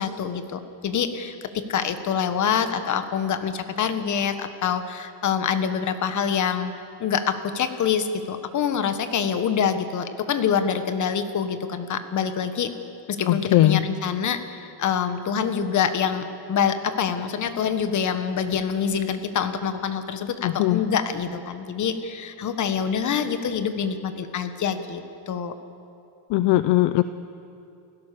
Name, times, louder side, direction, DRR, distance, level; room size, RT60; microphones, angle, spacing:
voice 1, 0.0-12.7 13.1-25.5, left 7 dB, 40° left, 9 dB, 1.5 m, -26 dB
voice 2, 13.3-13.9 20.4-20.8 26.3-27.0, left 15 dB, 60° left, 12 dB, 0.7 m, -19 dB
29.5 x 16.5 x 6.9 m, 2.7 s
cardioid pair, 140°, 46 cm